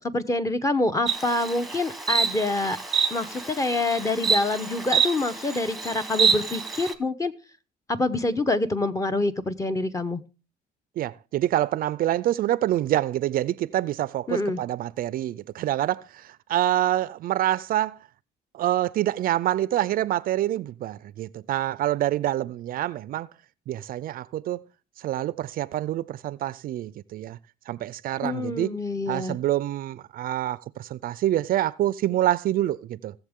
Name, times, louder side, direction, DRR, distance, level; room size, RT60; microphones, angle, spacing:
voice 1, 0.1-2.8 3.1-7.3 7.9-10.2 14.3-14.6 28.2-29.4, left 2 dB, 20° left, 0.9 m, -26 dB
Insect, 1.1-6.9, right 6 dB, ahead, 1.1 m, -27 dB
voice 2, 11.0-18.0 18.5-23.3 23.7-24.6 25.0-27.4 27.7-28.7 29.1-33.1, right 13 dB, 60° right, 0.4 m, -26 dB
18.0 x 7.1 x 3.6 m
cardioid pair, 110°, 17 cm